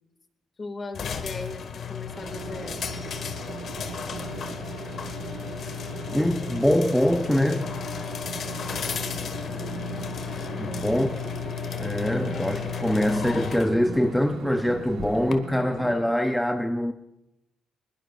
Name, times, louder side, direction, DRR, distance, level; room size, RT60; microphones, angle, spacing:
voice 1, 0.6-2.8 10.5-10.8 11.1-11.2, left 3 dB, 35° left, 2.2 m, -38 dB
sound 1, 0.9-15.3, left 8 dB, 60° left, 1.6 m, -34 dB
sound 2, 2.1-16.0, right 7 dB, 85° right, 1.7 m, -39 dB
voice 2, 6.1-7.7 10.6-11.2 11.8-16.9, left 1 dB, 5° left, 0.8 m, -24 dB
21.5 x 21.5 x 2.5 m
cardioid pair, 90°, 0 cm